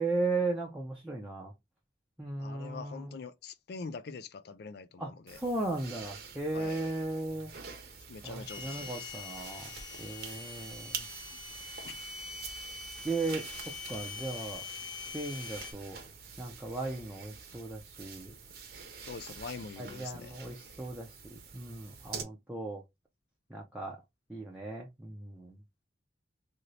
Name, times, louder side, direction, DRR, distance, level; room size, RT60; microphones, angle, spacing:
voice 1, 0.0-1.5 2.2-3.2 5.0-7.5 8.2-9.7 10.0-11.1 13.0-13.5 13.9-14.6 15.1-16.0 16.4-18.4 19.8-22.8 23.5-24.0 24.3-25.6, right 2 dB, 5° right, 0.5 m, -36 dB
voice 2, 2.4-5.4 6.5-6.8 8.1-9.1 11.8-12.0 19.1-20.4, left 5 dB, 60° left, 0.4 m, -44 dB
sound 1, 5.3-22.2, right 6 dB, 55° right, 0.8 m, -47 dB
sound 2, 8.5-15.7, left 4 dB, 25° left, 0.8 m, -44 dB
2.8 x 2.6 x 3.2 m
head